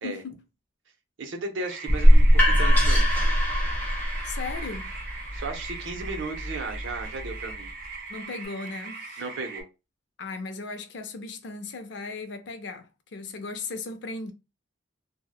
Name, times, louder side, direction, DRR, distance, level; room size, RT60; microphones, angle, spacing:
voice 1, 0.0-0.4 4.2-4.9 8.1-9.2 10.2-14.3, left 4 dB, 65° left, 0.4 m, -37 dB
voice 2, 1.2-3.1 5.3-7.7 9.2-9.7, right 3 dB, 85° right, 0.6 m, -35 dB
sound 1, 1.6-9.6, right 4 dB, 45° right, 0.7 m, -40 dB
sound 2, 1.9-7.7, equal, 10° left, 0.5 m, -22 dB
2.7 x 2.1 x 2.3 m
head